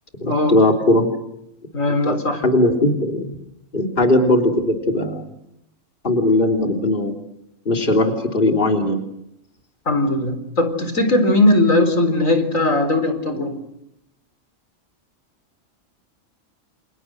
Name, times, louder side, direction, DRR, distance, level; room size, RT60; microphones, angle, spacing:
voice 1, 0.2-1.1 2.0-2.2 2.4-3.3 3.7-5.3 6.0-7.1 7.6-9.0, left 1 dB, 40° left, 2 dB, 3.5 m, -18 dB
voice 2, 1.7-2.4 9.9-13.6, left 2 dB, 85° left, 7 dB, 4.7 m, -19 dB
30.0 x 29.0 x 6.4 m, 0.83 s
omnidirectional pair, 1.3 m